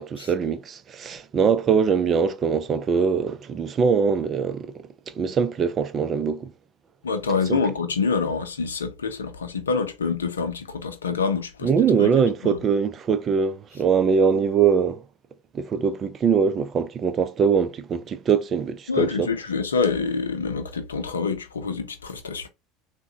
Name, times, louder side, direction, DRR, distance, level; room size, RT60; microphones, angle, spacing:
voice 1, 0.0-4.9 5.2-6.5 7.5-7.6 11.6-15.0 15.5-19.3, right 6 dB, 40° right, 0.4 m, -22 dB
voice 2, 7.0-11.7 12.0-12.1 12.4-12.6 18.9-22.5, left 5 dB, 90° left, 0.5 m, -26 dB
3.6 x 2.2 x 2.7 m
hypercardioid pair, 75°, 0 cm